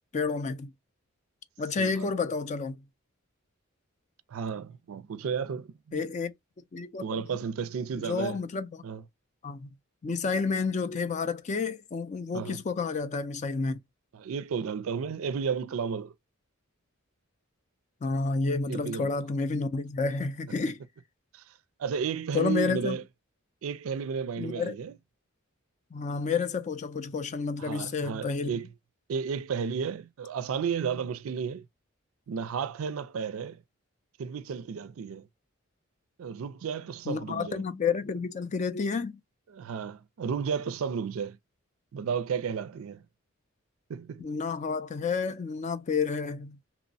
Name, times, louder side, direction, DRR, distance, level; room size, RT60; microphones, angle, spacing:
voice 1, 0.1-0.7 1.6-2.8 5.9-6.3 6.7-7.0 7.9-8.8 9.4-9.7 10.0-13.8 18.0-20.8 22.3-23.0 24.4-24.7 25.9-28.6 37.1-39.2 44.2-46.6, left 4 dB, 35° left, 0.3 m, -30 dB
voice 2, 1.8-2.1 4.3-6.0 7.0-8.4 8.8-9.0 12.3-12.6 14.1-16.1 18.7-19.1 21.3-21.4 21.8-23.0 23.6-24.9 27.6-28.7 29.1-31.6 32.3-33.6 34.2-35.2 36.2-37.6 39.5-41.4 41.9-43.0 43.9-44.2, right 6 dB, 75° right, 0.4 m, -33 dB
2.9 x 2.0 x 2.5 m
head